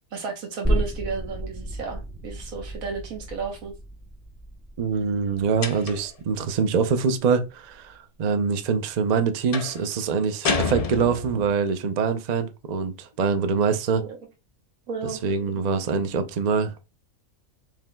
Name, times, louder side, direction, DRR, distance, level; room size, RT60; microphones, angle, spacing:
voice 1, 0.1-3.7 14.0-14.2 14.9-15.2, right 5 dB, 80° right, 1.4 m, -33 dB
sound 1, 0.6-7.9 8.3-8.4, right 1 dB, 5° right, 0.9 m, -32 dB
voice 2, 4.8-14.0 15.2-16.7, right 5 dB, 50° right, 0.5 m, -24 dB
sound 2, 5.6-6.2 9.5-9.8 10.4-11.5, left 4 dB, 60° left, 0.4 m, -28 dB
7.3 x 3.1 x 2.2 m
omnidirectional pair, 1.4 m